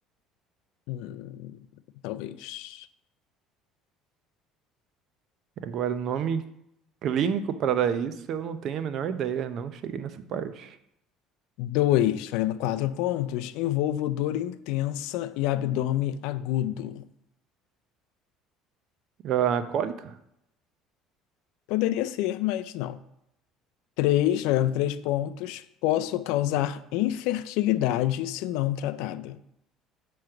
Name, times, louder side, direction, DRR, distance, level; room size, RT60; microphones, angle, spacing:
voice 1, 0.9-1.6 2.0-2.9 11.6-17.1 21.7-23.0 24.0-29.4, left 13 dB, 80° left, 0.3 m, -27 dB
voice 2, 5.6-6.4 7.0-10.8 19.2-20.1, right 8 dB, 55° right, 0.5 m, -28 dB
6.3 x 3.1 x 5.8 m
cardioid pair, 110°, 0 cm